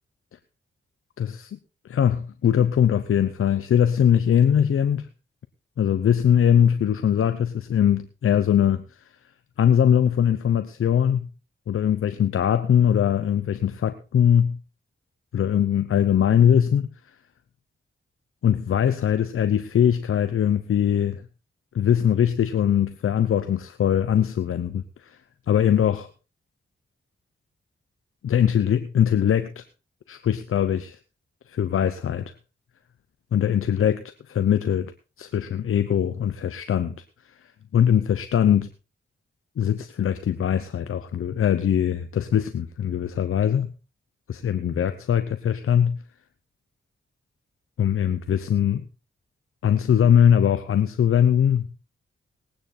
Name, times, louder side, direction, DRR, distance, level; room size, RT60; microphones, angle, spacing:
voice 1, 1.2-1.6 1.9-5.1 5.8-8.8 9.6-11.3 11.7-14.6 15.3-16.9 18.4-21.2 21.7-25.2 25.5-26.1 28.2-29.6 30.1-31.0 31.5-32.3 33.3-34.9 35.2-37.0 37.7-38.7 39.6-43.7 44.3-46.0 47.8-48.8 49.6-51.7, left 9 dB, 90° left, 10 dB, 0.8 m, -21 dB
19.0 x 9.2 x 4.3 m, 0.32 s
cardioid pair, 50°, 21 cm